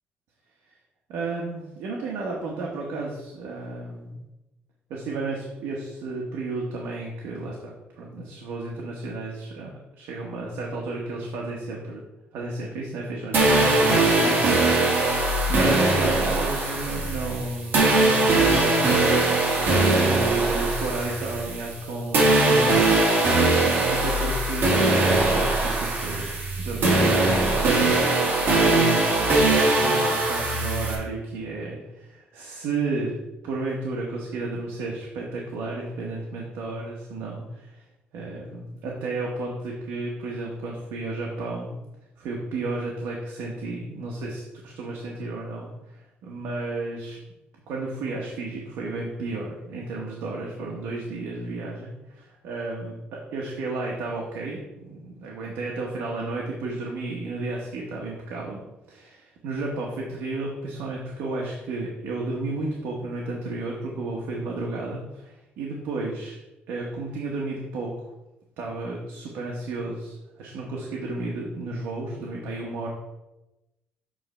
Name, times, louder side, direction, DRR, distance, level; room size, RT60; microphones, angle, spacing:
voice 1, 1.1-4.2 4.9-9.7 10.0-12.0 12.3-14.5 15.1-22.9 23.6-26.3 26.6-33.2 33.4-37.8 38.1-41.8 42.2-47.2 47.7-58.6 58.9-66.4 66.7-68.1 68.6-72.9, right 3 dB, 85° right, -2 dB, 1.2 m, -32 dB
sound 1, 13.3-21.8 22.1-30.9, right 2 dB, 55° right, 2.0 m, -21 dB
7.6 x 3.3 x 5.4 m, 0.99 s
cardioid pair, 110°, 4 cm